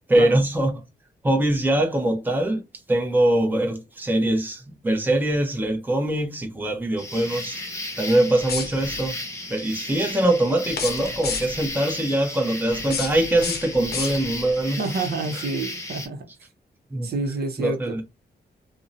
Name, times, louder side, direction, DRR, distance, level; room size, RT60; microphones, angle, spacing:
voice 1, 0.1-0.7 1.2-2.6 2.9-7.6 8.0-9.1 9.5-14.8 16.9-17.1 17.6-18.0, right 1 dB, 10° right, 0.6 m, -22 dB
sound 1, 7.0-16.1, left 2 dB, 15° left, 0.8 m, -35 dB
sound 2, 8.4-9.1 10.7-11.7 12.7-14.5, left 5 dB, 70° left, 0.6 m, -32 dB
voice 2, 14.8-16.2 17.0-18.0, right 3 dB, 65° right, 0.6 m, -28 dB
2.6 x 2.1 x 2.5 m
wide cardioid pair, 120°, 17 cm